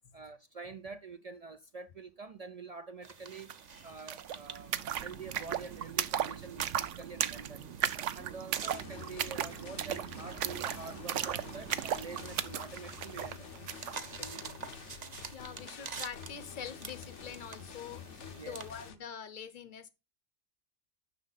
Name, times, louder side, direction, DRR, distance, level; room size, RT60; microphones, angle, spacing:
voice 1, 0.1-3.6 3.8-7.8 8.1-13.7 14.2-14.9 18.4-18.6, right 4 dB, 60° right, 0.4 m, -47 dB
sound 1, 3.0-18.9, right 5 dB, 40° right, 0.8 m, -49 dB
sound 2, 3.5-3.6 3.8-14.0, right 10 dB, 80° right, 1.0 m, -36 dB
sound 3, 8.7-19.0, left 7 dB, 70° left, 1.2 m, -49 dB
voice 2, 15.3-19.9, left 7 dB, 45° left, 0.9 m, -45 dB
10.5 x 6.3 x 4.0 m
omnidirectional pair, 1.2 m